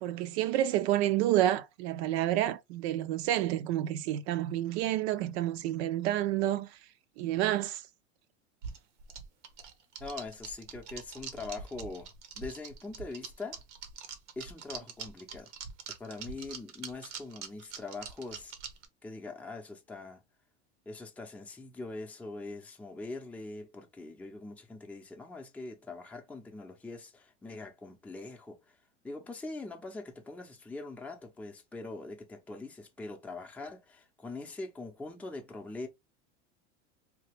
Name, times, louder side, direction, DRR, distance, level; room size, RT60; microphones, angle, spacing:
voice 1, 0.0-6.7 7.2-7.8, right 13 dB, 65° right, 0.5 m, -29 dB
sound 1, 8.6-18.9, right 6 dB, 85° right, 0.8 m, -44 dB
voice 2, 10.0-12.1 12.4-13.6 14.4-15.5 16.0-18.5 19.0-20.2 20.9-28.6 29.0-35.9, left 3 dB, 5° left, 0.6 m, -42 dB
2.9 x 2.3 x 3.3 m
hypercardioid pair, 95°, 35 cm